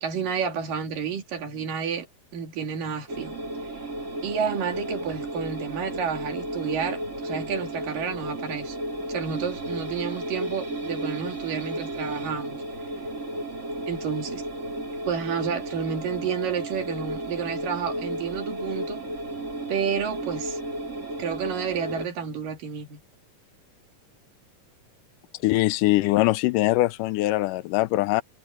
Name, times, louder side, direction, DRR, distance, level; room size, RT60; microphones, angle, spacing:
voice 1, 0.0-2.1 2.3-3.3 4.2-8.8 9.1-12.6 13.9-14.4 15.0-19.0 19.7-20.6 21.2-23.0, right 7 dB, 80° right, 4.2 m, -30 dB
sound 1, 3.1-22.1, right 1 dB, 20° right, 4.1 m, -33 dB
voice 2, 25.4-28.2, left 18 dB, 85° left, 2.2 m, -22 dB
omnidirectional pair, 3.8 m